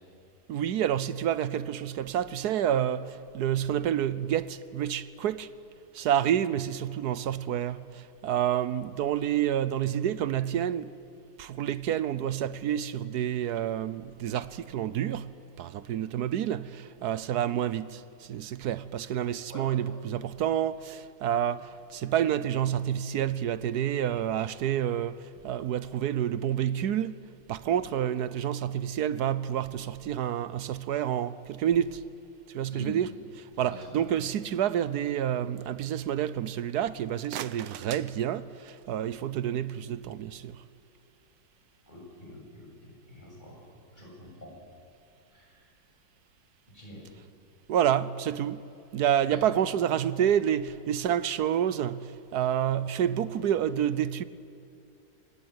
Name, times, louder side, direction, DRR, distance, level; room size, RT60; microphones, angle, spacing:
voice 1, 0.5-5.5 5.9-10.9 11.4-32.0 32.5-33.1 33.4-40.6 47.7-54.2, right 10 dB, 65° right, 1.2 m, -29 dB
voice 2, 33.5-34.1 41.9-43.6 43.9-44.6 45.3-45.7 46.7-47.0 48.9-49.4, left 1 dB, 25° left, 7.4 m, -46 dB
sound 1, 37.1-39.0, right 12 dB, 80° right, 1.4 m, -42 dB
25.5 x 18.5 x 9.5 m
omnidirectional pair, 2.0 m